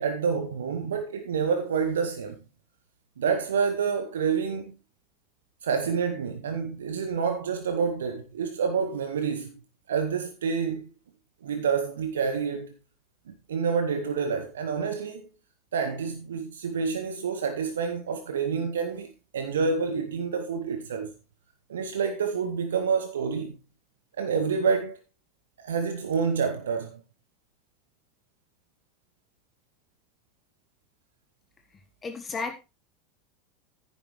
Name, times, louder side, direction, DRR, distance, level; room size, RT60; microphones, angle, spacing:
voice 1, 0.0-2.4 3.2-4.8 5.6-9.5 9.9-10.9 11.4-12.7 13.3-15.2 15.7-21.1 21.7-23.5 24.2-25.0 25.6-27.0, right 6 dB, 70° right, 1.1 m, -28 dB
voice 2, 32.0-32.6, left 4 dB, 25° left, 1.4 m, -33 dB
10.5 x 9.8 x 3.2 m
figure-of-eight pair, 80°, 0 cm